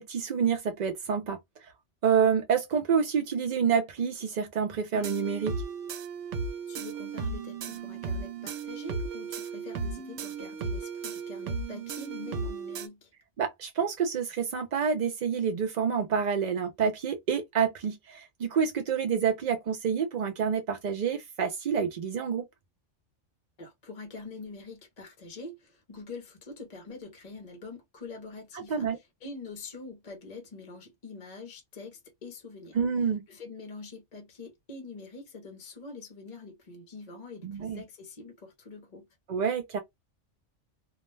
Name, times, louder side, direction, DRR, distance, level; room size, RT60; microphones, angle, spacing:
voice 1, 0.0-1.7 2.0-5.5 13.4-22.4 28.7-29.0 32.7-33.2 37.4-37.8 39.3-39.8, right 6 dB, 60° right, 0.4 m, -28 dB
sound 1, 4.9-12.9, right 4 dB, 90° right, 0.9 m, -35 dB
voice 2, 6.7-13.1 23.6-32.8 33.3-39.1, left 3 dB, 40° left, 0.7 m, -45 dB
2.3 x 2.1 x 3.1 m
omnidirectional pair, 1.2 m